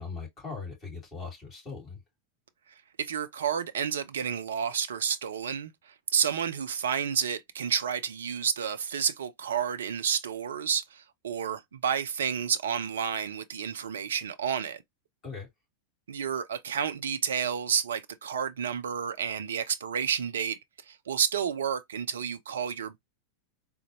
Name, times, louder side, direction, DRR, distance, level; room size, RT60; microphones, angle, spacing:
voice 1, 0.0-2.0 15.2-15.5, left 4 dB, 25° left, 2.6 m, -39 dB
voice 2, 3.0-5.7 6.1-14.8 16.1-20.6 20.9-23.0, right 7 dB, 65° right, 0.4 m, -30 dB
3.9 x 2.1 x 2.8 m
figure-of-eight pair, 90°, 0 cm